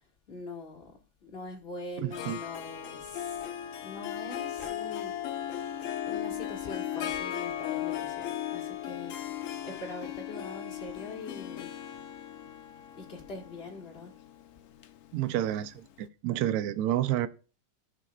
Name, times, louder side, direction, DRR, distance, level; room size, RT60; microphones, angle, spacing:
voice 1, 0.3-0.9 1.2-3.4 3.8-5.1 6.1-11.7 12.9-14.1, left 3 dB, 30° left, 2.0 m, -43 dB
voice 2, 2.0-2.4 15.1-15.7 16.0-17.3, right 12 dB, 70° right, 0.9 m, -29 dB
Harp, 2.1-15.7, left 10 dB, 80° left, 0.7 m, -37 dB
13.5 x 5.7 x 2.4 m
omnidirectional pair, 2.1 m